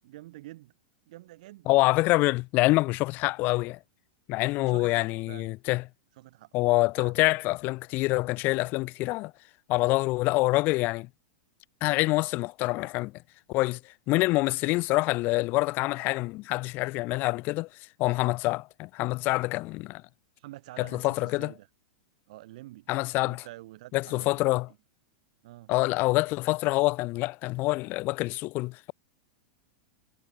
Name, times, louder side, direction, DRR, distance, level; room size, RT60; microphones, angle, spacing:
voice 1, 0.0-0.7 1.1-1.7 4.6-5.5 6.2-6.5 7.0-7.2 20.4-21.7 22.3-22.9 23.2-24.8 25.4-25.7, right 17 dB, 60° right, 4.9 m, -47 dB
voice 2, 1.7-3.8 4.3-5.8 6.5-9.3 9.7-11.1 11.8-13.1 13.5-13.8 14.1-17.7 18.0-20.0 20.8-21.5 22.9-23.4 23.9-24.7 25.7-28.9, left 21 dB, 45° left, 1.3 m, -26 dB
hypercardioid pair, 100°, 4 cm